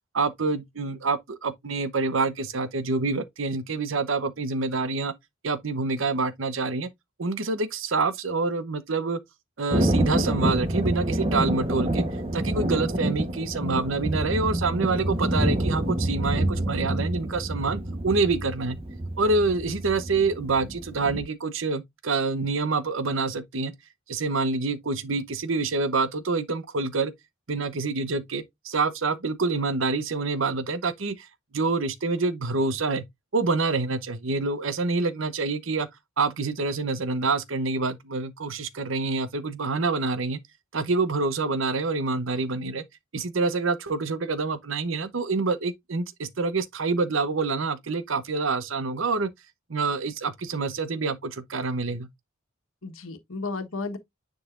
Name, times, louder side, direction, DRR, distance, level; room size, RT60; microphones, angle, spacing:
voice 1, 0.1-5.1 5.4-6.9 7.2-9.2 9.6-12.0 12.3-18.8 19.2-23.7 24.1-27.1 27.5-31.3 31.5-33.0 33.3-35.9 36.2-40.4 40.7-42.8 43.1-49.3 49.7-52.1, right 3 dB, 70° right, 0.9 m, -27 dB
Thunder, 9.7-21.2, right 1 dB, 30° right, 1.0 m, -27 dB
voice 2, 11.2-11.6 42.5-42.7 52.8-54.0, left 3 dB, 85° left, 1.3 m, -35 dB
9.8 x 3.9 x 2.5 m
head